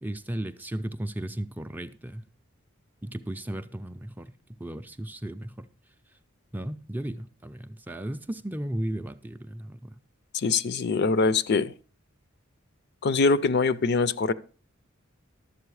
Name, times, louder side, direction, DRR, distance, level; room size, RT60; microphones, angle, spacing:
voice 1, 0.0-2.3 3.0-5.7 6.5-10.0, right 1 dB, 10° right, 0.4 m, -35 dB
voice 2, 10.3-11.7 13.0-14.3, left 4 dB, 50° left, 0.5 m, -23 dB
12.0 x 7.6 x 4.7 m
head